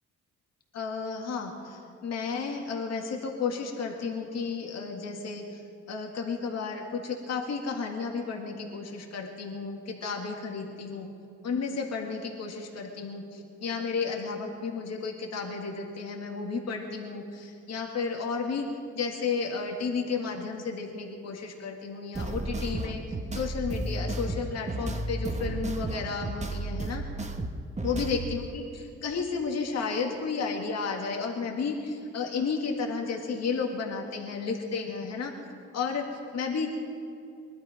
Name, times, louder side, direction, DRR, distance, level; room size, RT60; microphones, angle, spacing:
voice 1, 0.7-5.6 5.9-11.1 11.4-18.7 18.9-23.0 23.3-27.0 27.8-35.3 35.7-36.8, left 5 dB, 60° left, 2 dB, 2.0 m, -32 dB
sound 1, 22.1-28.4, right 2 dB, 25° right, 1.2 m, -33 dB
20.5 x 12.0 x 5.1 m, 2.5 s
cardioid pair, 90°, 30 cm